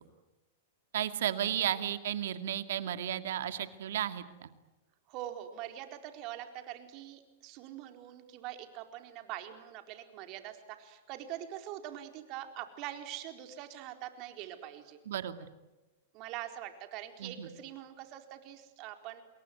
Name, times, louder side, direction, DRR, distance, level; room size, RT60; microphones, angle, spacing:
voice 1, 0.9-4.5 15.1-15.4 17.2-17.5, right 11 dB, 75° right, 10 dB, 2.2 m, -33 dB
voice 2, 5.1-15.0 16.1-19.2, right 12 dB, 45° right, 6 dB, 4.2 m, -44 dB
28.0 x 22.0 x 9.6 m, 1.1 s
hypercardioid pair, 120°, 0 cm